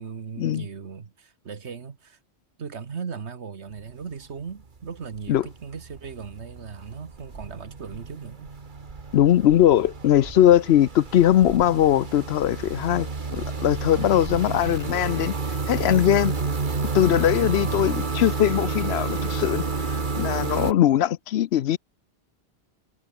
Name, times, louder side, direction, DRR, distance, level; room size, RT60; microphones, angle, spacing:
voice 1, 0.0-2.2 2.6-8.5 17.6-17.9, right 6 dB, 90° right, 1.7 m, -38 dB
sound 1, 3.7-4.2 4.5-20.7, right 4 dB, 50° right, 1.7 m, -30 dB
voice 2, 9.1-13.1 13.3-15.3 15.7-16.3 16.9-21.8, left 11 dB, 75° left, 0.9 m, -20 dB
omnidirectional pair, 1.1 m